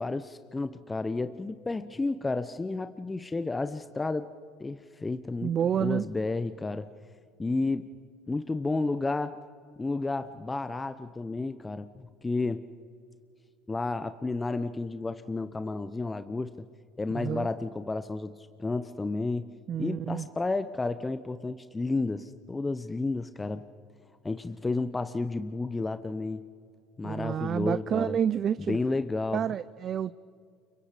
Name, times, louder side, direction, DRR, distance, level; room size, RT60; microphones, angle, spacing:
voice 1, 0.0-4.3 4.6-5.5 5.8-6.9 7.4-7.9 8.3-9.4 9.8-12.6 13.7-16.5 17.0-19.5 19.8-23.6 24.2-26.4 27.0-28.2 28.6-29.4, left 3 dB, 20° left, 0.9 m, -31 dB
voice 2, 5.4-6.1 17.1-17.5 19.7-20.3 27.0-28.8 29.3-30.1, right 9 dB, 45° right, 0.5 m, -29 dB
29.5 x 25.0 x 5.1 m
hypercardioid pair, 80°, 0 cm